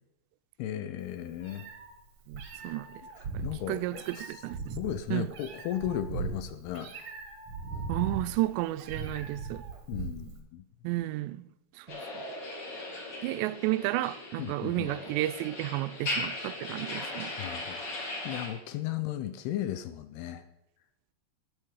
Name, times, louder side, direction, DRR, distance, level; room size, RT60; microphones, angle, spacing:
voice 1, 0.6-1.7 2.6-2.8 3.2-4.4 4.8-6.9 9.9-10.6 14.4-14.9 17.4-20.4, left 11 dB, 80° left, 2.5 m, -36 dB
Meow, 1.0-10.4, right 4 dB, 55° right, 1.6 m, -39 dB
voice 2, 2.3-3.0 3.3-4.8 5.1-5.3 7.9-9.6 10.8-11.5 11.8-12.0 13.2-17.3, right 17 dB, 85° right, 2.8 m, -32 dB
sound 1, 11.9-18.5, left 2 dB, 40° left, 2.8 m, -38 dB
12.5 x 9.2 x 4.8 m
omnidirectional pair, 5.0 m